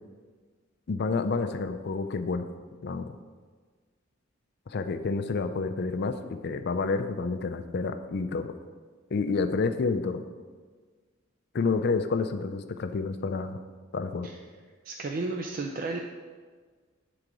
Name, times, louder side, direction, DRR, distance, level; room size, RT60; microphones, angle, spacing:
voice 1, 0.9-2.5 2.8-3.1 4.7-8.5 9.1-10.2 11.5-13.6 13.9-14.3, left 4 dB, 55° left, 8 dB, 0.4 m, -29 dB
voice 2, 14.8-16.0, right 3 dB, 45° right, 3 dB, 0.4 m, -33 dB
8.8 x 3.9 x 4.7 m, 1.5 s
head